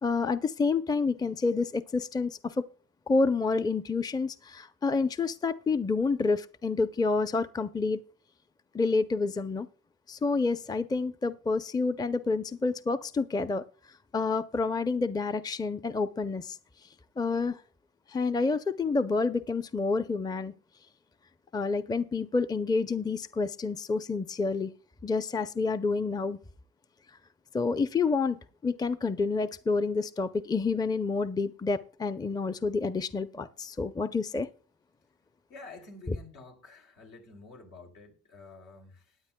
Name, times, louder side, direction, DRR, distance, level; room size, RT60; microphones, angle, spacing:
voice 1, 0.0-2.6 3.1-8.0 8.7-9.7 10.1-13.6 14.1-16.6 17.2-17.6 18.1-20.5 21.5-24.7 25.0-26.4 27.5-34.5, left 4 dB, 15° left, 0.5 m, -28 dB
voice 2, 35.5-39.2, left 3 dB, 80° left, 3.0 m, -49 dB
20.5 x 9.4 x 2.2 m
cardioid pair, 90°, 30 cm